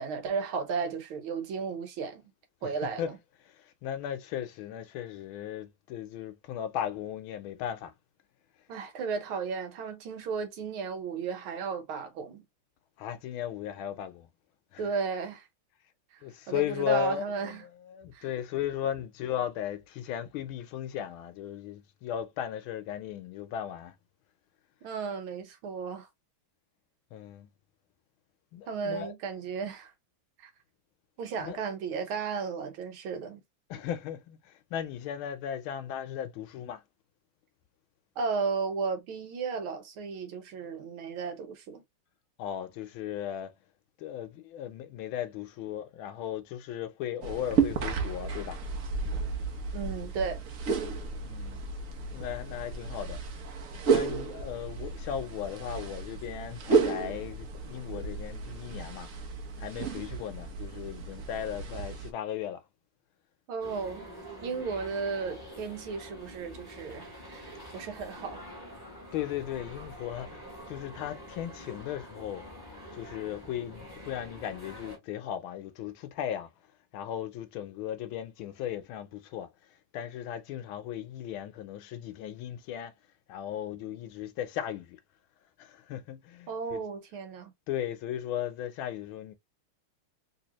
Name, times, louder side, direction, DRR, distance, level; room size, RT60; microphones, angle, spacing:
voice 1, 0.0-2.3 2.6-3.2 8.7-12.4 14.8-15.5 16.1-17.6 18.1-18.3 24.8-26.1 28.7-29.9 30.4-30.5 31.2-33.4 38.2-41.8 49.7-50.4 63.5-64.1 64.4-68.4 86.5-87.5, right 5 dB, 80° right, 1.8 m, -34 dB
voice 2, 2.6-7.9 13.0-14.3 14.7-14.9 16.2-23.9 27.1-27.5 28.5-29.4 31.4-31.6 33.7-36.8 42.4-43.5 44.0-48.6 51.2-51.6 52.1-53.2 53.9-59.1 59.6-62.6 69.1-72.4 72.9-76.5 76.9-79.5 79.9-82.9 83.3-85.0 85.6-86.8 87.7-89.3, left 10 dB, 75° left, 1.4 m, -36 dB
sound 1, 47.2-62.1, right 5 dB, 60° right, 0.9 m, -32 dB
sound 2, 63.6-75.0, equal, 10° right, 1.6 m, -46 dB
3.4 x 3.0 x 2.9 m
omnidirectional pair, 2.3 m